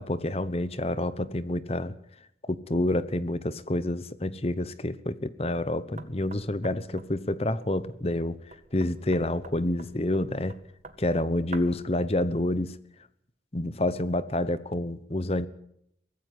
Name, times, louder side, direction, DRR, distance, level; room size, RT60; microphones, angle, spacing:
voice 1, 0.0-1.9 2.4-10.6 11.0-12.8 13.5-15.5, left 1 dB, 35° left, 15 dB, 1.0 m, -28 dB
Knock, 6.0-11.9, right 3 dB, 40° right, 1.8 m, -48 dB
23.5 x 14.5 x 9.5 m, 0.74 s
head